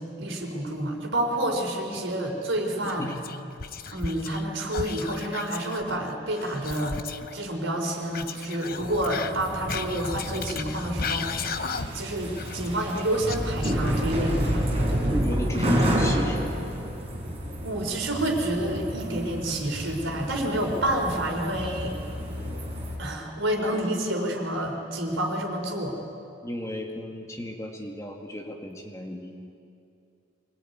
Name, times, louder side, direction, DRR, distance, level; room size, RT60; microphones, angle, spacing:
voice 1, 0.0-3.1 3.9-7.0 7.3-15.2 17.6-21.9 23.0-26.0, right 1 dB, 70° right, 2 dB, 4.3 m, -29 dB
Whispering, 2.8-4.4 4.7-7.4 8.1-12.1 12.4-14.2, left 5 dB, 45° left, 0.9 m, -35 dB
voice 2, 2.8-3.2 8.7-8.9 15.0-16.6 26.4-29.4, equal, 15° left, 1 dB, 2.2 m, -34 dB
sound 1, 8.8-22.9, equal, 30° right, 5.3 m, -30 dB
24.5 x 21.0 x 9.5 m, 2.5 s
head